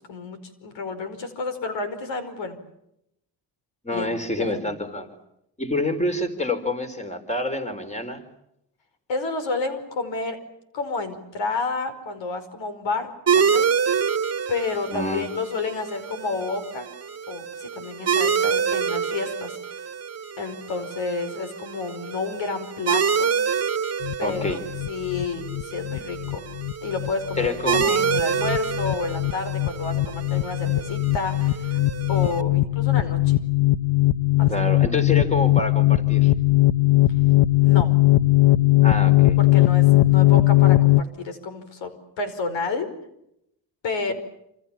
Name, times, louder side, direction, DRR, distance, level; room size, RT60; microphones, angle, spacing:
voice 1, 0.1-2.6 3.9-4.0 4.3-4.6 9.1-10.4 10.7-13.7 14.0-14.1 14.5-16.9 17.3-19.6 20.4-23.4 24.2-24.6 24.9-26.4 26.8-31.8 32.1-33.4 34.4-34.7 37.6-37.9 39.4-42.9 43.8-44.1, left 3 dB, 85° left, 10 dB, 5.2 m, -30 dB
voice 2, 3.8-5.1 5.6-8.2 14.9-15.3 24.2-24.6 27.4-28.0 34.5-36.3 38.8-39.4, left 2 dB, 15° left, 7 dB, 4.3 m, -27 dB
sound 1, 13.3-32.4, right 6 dB, 35° right, 1.7 m, -27 dB
sound 2, 24.0-41.0, left 18 dB, 65° left, 1.0 m, -19 dB
28.0 x 27.5 x 7.3 m, 0.79 s
cardioid pair, 105°, 44 cm